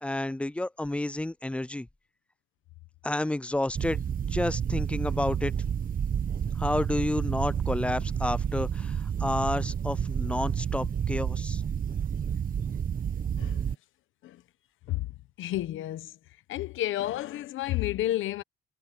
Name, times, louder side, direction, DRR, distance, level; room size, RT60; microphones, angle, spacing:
voice 1, 0.0-1.9 3.0-4.0 4.3-5.5 6.6-11.6, left 1 dB, 5° left, 0.4 m, -30 dB
sound 1, 3.8-13.7, right 8 dB, 45° right, 1.1 m, -30 dB
voice 2, 15.4-16.2 16.5-18.4, left 14 dB, 85° left, 1.1 m, -31 dB
cardioid pair, 90°, 20 cm